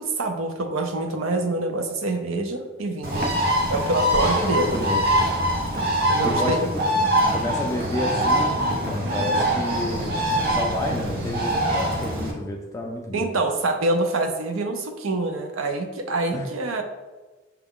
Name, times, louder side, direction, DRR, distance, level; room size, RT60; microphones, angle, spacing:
voice 1, 0.0-3.3 3.7-4.7 6.1-6.6 13.1-16.8, right 2 dB, 85° right, 6 dB, 0.6 m, -26 dB
Bird, 3.0-12.3, equal, 50° right, 0.8 m, -23 dB
voice 2, 4.2-5.0 6.2-13.3 16.3-16.5, left 1 dB, 15° left, 0 dB, 0.3 m, -30 dB
5.8 x 2.3 x 3.6 m, 1.3 s
head